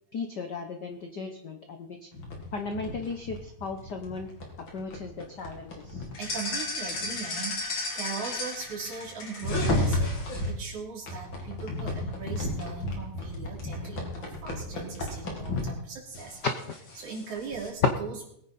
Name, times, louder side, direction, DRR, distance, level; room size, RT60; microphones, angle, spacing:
voice 1, 0.1-2.1 2.5-4.3 4.6-6.1 16.4-16.8, left 4 dB, 75° left, 5 dB, 0.9 m, -36 dB
sound 1, 2.1-10.5 11.1-15.7 16.1-17.7, left 2 dB, 40° left, 3.2 m, -33 dB
voice 2, 6.2-16.4 17.0-18.3, right 5 dB, 80° right, -1 dB, 4.4 m, -39 dB
21.0 x 9.4 x 4.2 m, 0.72 s
omnidirectional pair, 3.4 m